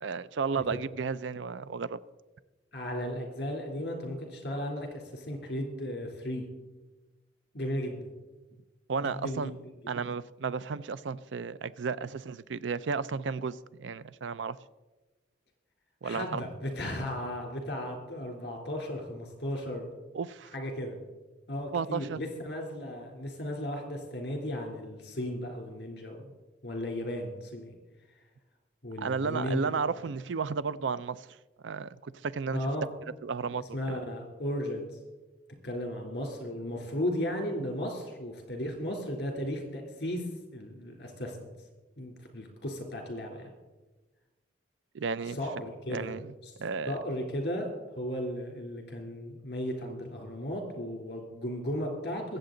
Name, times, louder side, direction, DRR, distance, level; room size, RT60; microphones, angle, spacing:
voice 1, 0.0-2.0 8.9-9.5 9.9-14.6 16.0-16.4 20.1-20.5 21.7-22.2 29.0-31.3 31.6-32.6 33.2-34.0 44.9-45.4 45.9-46.3 46.6-47.0, right 5 dB, 85° right, 0.5 m, -33 dB
voice 2, 2.7-6.4 7.5-8.1 9.0-9.5 16.0-19.9 20.5-21.0 21.5-26.3 26.6-27.7 28.8-30.0 32.5-32.9 33.7-34.9 35.6-40.2 40.5-41.5 42.0-43.5 45.3-46.1 46.4-46.5 46.9-47.7 47.9-52.4, left 1 dB, 60° left, 3.2 m, -35 dB
22.5 x 7.8 x 3.9 m
head